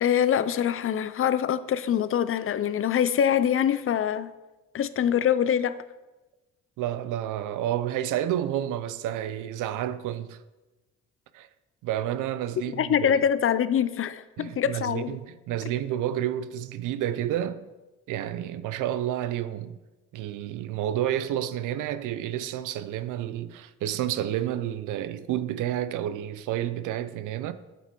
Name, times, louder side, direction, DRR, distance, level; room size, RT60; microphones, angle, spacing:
voice 1, 0.0-4.3 4.7-5.8 12.8-15.2, left 9 dB, 45° left, 0.5 m, -24 dB
voice 2, 6.8-10.4 11.3-11.5 11.8-13.2 14.4-17.6 18.1-19.8 20.1-27.5, right 11 dB, 90° right, 0.6 m, -30 dB
9.0 x 7.1 x 4.6 m
cardioid pair, 90°, 30 cm